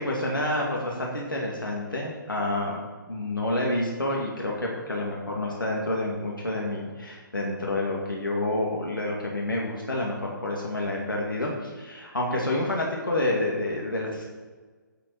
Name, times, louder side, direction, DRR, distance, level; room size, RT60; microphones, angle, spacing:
voice 1, 0.0-2.8 3.1-14.3, left 1 dB, 80° left, -2 dB, 2.1 m, -28 dB
10.5 x 7.0 x 6.3 m, 1.4 s
figure-of-eight pair, 130°, 11 cm